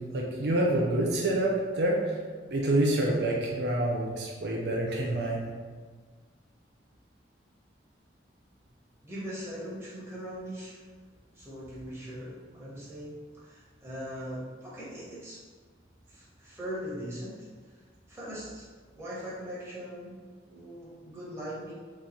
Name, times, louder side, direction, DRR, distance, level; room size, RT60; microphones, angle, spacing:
voice 1, 0.0-2.2 2.5-5.5, right 1 dB, 70° right, -1 dB, 0.6 m, -27 dB
voice 2, 9.0-10.8 11.3-15.4 16.1-17.4 18.1-18.7 18.9-21.7, equal, 15° right, -8 dB, 1.3 m, -40 dB
3.8 x 3.1 x 4.1 m, 1.5 s
head